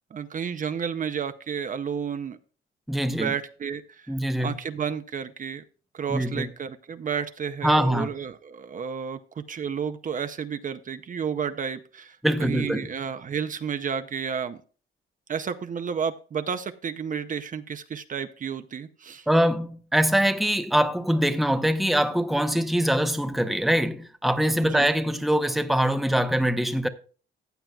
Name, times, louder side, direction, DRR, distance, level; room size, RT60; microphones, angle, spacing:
voice 1, 0.1-2.4 3.1-4.1 4.4-5.6 5.9-14.6 15.3-19.3 24.6-24.9, right 7 dB, 40° right, 0.6 m, -31 dB
voice 2, 2.9-3.3 4.1-4.6 6.1-6.5 7.6-8.1 12.2-12.9 19.3-26.9, equal, ahead, 0.8 m, -23 dB
15.0 x 8.9 x 2.3 m
cardioid pair, 90°, 20 cm